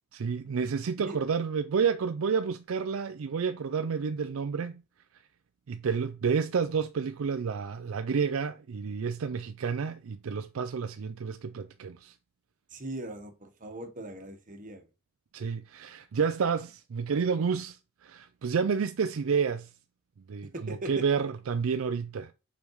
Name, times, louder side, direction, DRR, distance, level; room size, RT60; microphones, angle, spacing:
voice 1, 0.1-4.8 5.7-12.1 15.3-19.7 20.3-22.3, right 6 dB, 70° right, 0.4 m, -30 dB
voice 2, 12.7-14.8 20.5-21.0, right 1 dB, 40° right, 1.3 m, -39 dB
5.2 x 5.1 x 4.7 m
head